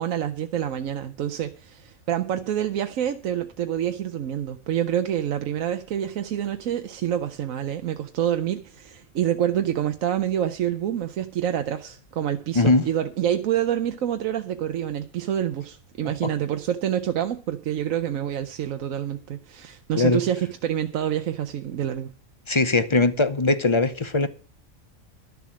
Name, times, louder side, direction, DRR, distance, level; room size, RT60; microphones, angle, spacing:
voice 1, 0.0-22.1, right 10 dB, 75° right, 1.1 m, -27 dB
voice 2, 12.5-12.9 20.0-20.2 22.5-24.3, left 3 dB, 30° left, 0.5 m, -20 dB
12.0 x 7.0 x 7.3 m
omnidirectional pair, 1.4 m